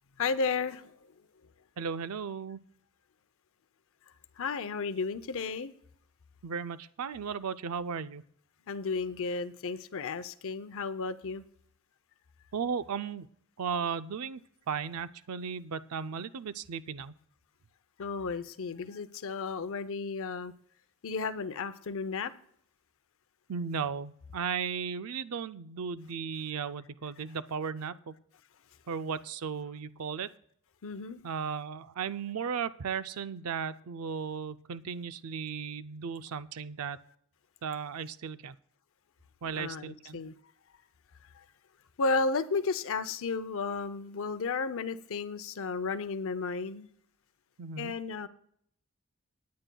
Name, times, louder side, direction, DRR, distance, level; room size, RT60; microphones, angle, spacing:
voice 1, 0.2-0.9 4.4-5.7 8.7-11.4 18.0-20.5 21.0-22.3 30.8-31.2 39.5-40.4 41.4-41.5 42.0-46.9 47.8-48.3, left 4 dB, 65° left, 0.6 m, -33 dB
voice 2, 1.8-2.6 6.4-8.2 12.5-13.3 13.6-14.4 14.7-17.2 23.5-28.1 28.9-30.3 31.2-37.0 37.6-38.6 39.4-40.2 47.6-47.9, right 6 dB, 70° right, 0.5 m, -35 dB
26.5 x 9.5 x 2.3 m
head